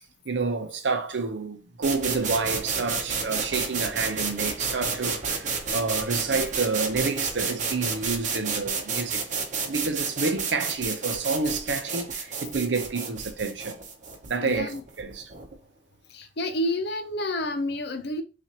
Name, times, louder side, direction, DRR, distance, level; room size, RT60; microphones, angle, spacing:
voice 1, 0.2-9.2 9.7-13.8 14.3-15.3, right 4 dB, 75° right, 0.7 m, -29 dB
sound 1, 1.8-15.5, right 5 dB, 45° right, 0.8 m, -31 dB
voice 2, 14.4-14.8 16.1-18.2, left 1 dB, 65° left, 0.7 m, -29 dB
5.8 x 2.5 x 2.9 m
head